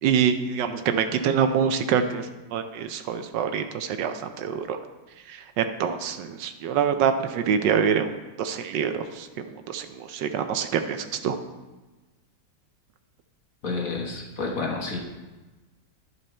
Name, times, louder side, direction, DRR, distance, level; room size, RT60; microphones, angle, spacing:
voice 1, 0.0-4.8 5.3-8.1 8.4-9.3 9.7-11.4, right 7 dB, 75° right, 8 dB, 1.2 m, -25 dB
voice 2, 13.6-15.0, left 3 dB, 50° left, -1 dB, 1.5 m, -30 dB
11.0 x 5.6 x 4.3 m, 1.2 s
omnidirectional pair, 2.0 m